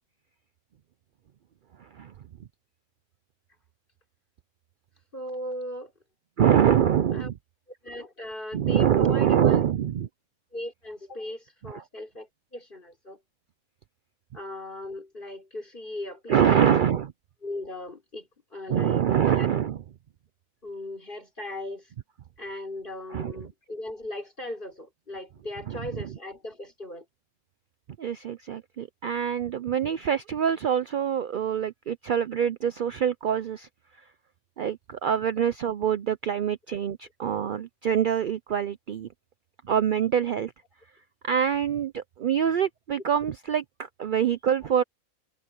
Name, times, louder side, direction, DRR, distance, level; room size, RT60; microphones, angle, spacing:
voice 1, 1.8-2.1 6.4-7.3 8.5-10.1 11.7-11.8 16.3-17.1 18.7-19.8 23.1-23.4 25.7-25.8 28.0-33.7 34.6-39.1 39.7-40.5 41.2-44.8, right 9 dB, 75° right, 0.4 m, -25 dB
voice 2, 5.1-5.9 7.1-7.3 7.7-9.6 10.5-13.2 14.3-16.7 17.4-19.5 20.6-21.9 22.4-27.0 44.2-44.3, left 1 dB, 35° left, 4.8 m, -38 dB
omnidirectional pair, 1.5 m